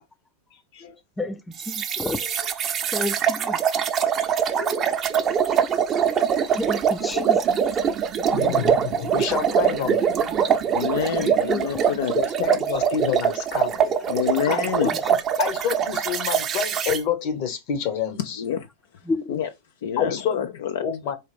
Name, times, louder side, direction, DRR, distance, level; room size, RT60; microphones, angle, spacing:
sound 1, 1.6-17.0, right 8 dB, 30° right, 0.6 m, -23 dB
voice 1, 1.7-2.2 2.9-3.6 6.6-7.4 11.2-11.7 19.1-19.4, left 2 dB, 10° left, 0.4 m, -29 dB
voice 2, 4.5-5.4 6.8-7.3 8.2-10.7 12.1-18.4 20.0-20.4 20.8-21.2, left 8 dB, 50° left, 1.0 m, -29 dB
voice 3, 10.7-12.1 14.1-14.9 18.2-18.7 19.3-19.5 19.8-21.1, left 9 dB, 70° left, 0.4 m, -27 dB
4.1 x 2.4 x 3.3 m
hypercardioid pair, 95°, 0 cm